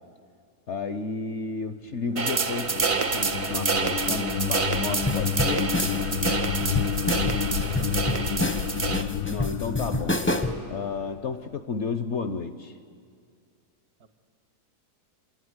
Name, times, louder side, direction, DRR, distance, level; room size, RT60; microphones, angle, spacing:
voice 1, 0.7-5.7 9.3-10.2 10.7-12.8, left 4 dB, 60° left, 10 dB, 0.8 m, -32 dB
sound 1, 2.0-11.3, left 8 dB, 85° left, 1.3 m, -30 dB
sound 2, 2.2-9.0, right 4 dB, 40° right, 0.5 m, -28 dB
sound 3, 5.1-10.7, left 1 dB, 15° left, 0.5 m, -29 dB
voice 2, 7.2-8.4 14.0-14.1, right 3 dB, 70° right, 10 dB, 1.6 m, -44 dB
27.0 x 11.0 x 9.6 m, 2.2 s
omnidirectional pair, 1.7 m